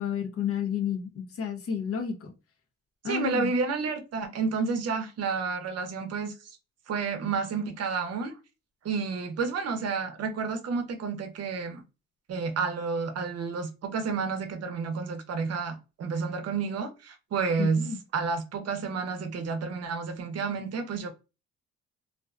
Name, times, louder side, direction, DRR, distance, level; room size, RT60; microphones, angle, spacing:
voice 1, 0.0-2.3 3.0-3.5 17.6-18.0, left 8 dB, 50° left, 0.8 m, -31 dB
voice 2, 3.0-6.3 6.9-8.3 8.8-11.8 12.3-17.9 18.1-21.1, right 5 dB, 55° right, 0.7 m, -30 dB
2.5 x 2.2 x 2.4 m
cardioid pair, 90°, 30 cm